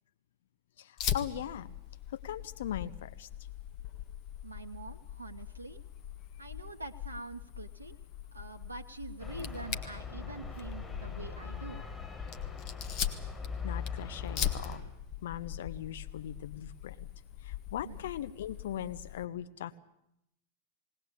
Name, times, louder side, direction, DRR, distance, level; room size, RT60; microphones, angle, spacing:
voice 1, 0.8-1.7 2.1-3.3 13.6-14.8 15.2-17.1 17.4-19.8, left 10 dB, 60° left, 12 dB, 0.8 m, -40 dB
Fire, 1.0-19.2, left 10 dB, 40° left, 1.5 m, -41 dB
voice 2, 4.4-5.8 6.4-8.0 8.3-11.8 17.8-18.1, right 3 dB, 80° right, 6 dB, 0.8 m, -45 dB
sound 1, 9.2-14.8, left 5 dB, 20° left, 7.9 m, -41 dB
19.5 x 19.0 x 8.2 m, 0.81 s
figure-of-eight pair, 90°, 0 cm